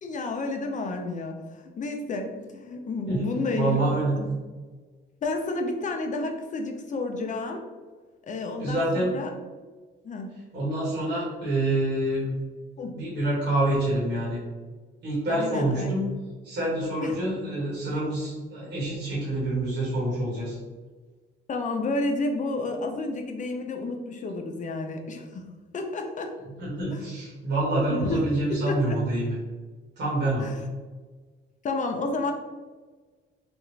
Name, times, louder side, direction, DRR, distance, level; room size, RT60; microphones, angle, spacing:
voice 1, 0.0-3.8 4.2-4.3 5.2-7.6 8.3-9.3 10.0-10.4 12.8-13.0 15.3-16.0 17.0-17.2 21.5-25.4 25.7-26.3 26.9-27.0 27.9-29.0 30.4-30.6 31.6-32.3, left 2 dB, 40° left, 4 dB, 0.6 m, -31 dB
voice 2, 3.5-4.1 8.6-9.2 10.5-12.3 12.9-14.4 15.0-16.1 16.4-20.6 26.6-29.3 30.0-30.5, right 1 dB, 60° right, -8 dB, 1.4 m, -27 dB
3.4 x 2.4 x 3.2 m, 1.4 s
cardioid pair, 90°, 20 cm